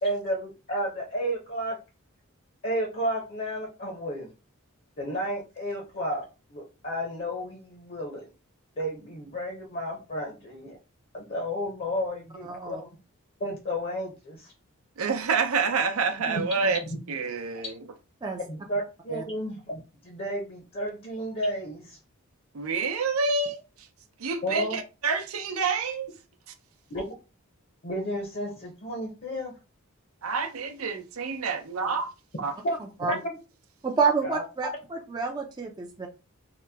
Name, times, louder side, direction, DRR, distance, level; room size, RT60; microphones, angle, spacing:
voice 1, 0.0-1.8 2.6-4.3 5.0-6.2 6.5-8.3 8.8-10.8 11.1-12.9 13.4-14.5 16.9-17.0 18.5-22.0 24.4-24.8 26.9-27.2 27.8-29.5 32.6-32.7 33.1-33.4 34.2-34.4, equal, 45° left, 0.7 m, -32 dB
voice 2, 12.4-12.8 16.2-16.4 18.2-18.4 19.1-19.2 33.0-33.1 33.8-36.1, right 5 dB, 20° right, 0.4 m, -28 dB
voice 3, 15.0-16.8 17.1-17.8 22.5-23.6 24.2-26.1 30.2-32.1 32.4-32.5, right 4 dB, 85° right, 0.6 m, -28 dB
2.9 x 2.2 x 3.4 m
head